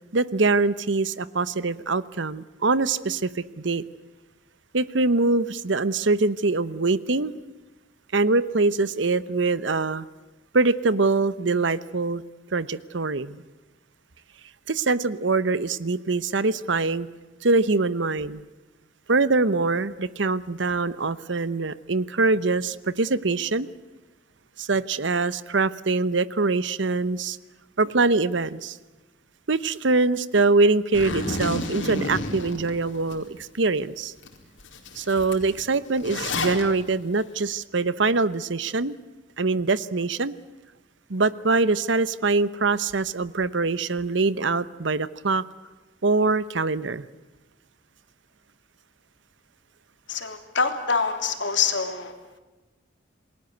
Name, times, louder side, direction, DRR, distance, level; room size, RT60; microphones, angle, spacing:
voice 1, 0.1-3.8 4.7-7.3 8.1-10.0 10.5-12.2 12.5-13.4 14.7-17.1 17.4-18.4 19.1-23.7 24.6-27.4 27.8-28.8 29.5-34.1 34.9-38.9 39.4-40.4 41.1-45.4 46.0-47.1, right 3 dB, 75° right, 16 dB, 0.9 m, -23 dB
Zipper (clothing), 30.9-33.2 33.6-33.7 34.2-34.3 34.6-36.6, left 2 dB, 90° left, 4.5 m, -30 dB
voice 2, 50.1-52.1, left 5 dB, 70° left, 6 dB, 3.3 m, -25 dB
28.5 x 20.5 x 8.0 m, 1.2 s
head